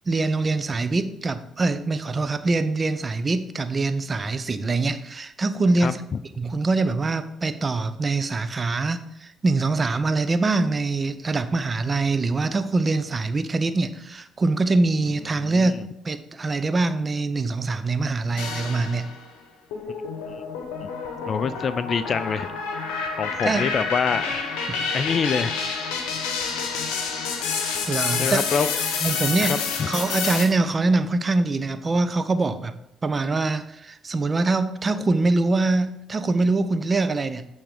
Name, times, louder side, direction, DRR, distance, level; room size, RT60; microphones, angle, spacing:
voice 1, 0.1-6.0 6.4-19.1 23.4-23.7 24.7-24.9 27.9-28.4 29.0-29.6 29.9-32.8 33.0-37.5, right 3 dB, 35° right, 11 dB, 0.6 m, -24 dB
voice 2, 15.4-15.9 21.3-22.5 23.2-24.4 24.9-25.5 28.2-28.7 29.4-29.9, left 6 dB, 50° left, 15 dB, 0.4 m, -25 dB
sound 1, 18.4-19.2 19.7-30.4, left 5 dB, 75° left, 0.9 m, -28 dB
8.7 x 3.6 x 5.0 m, 0.83 s
hypercardioid pair, 50°, 0 cm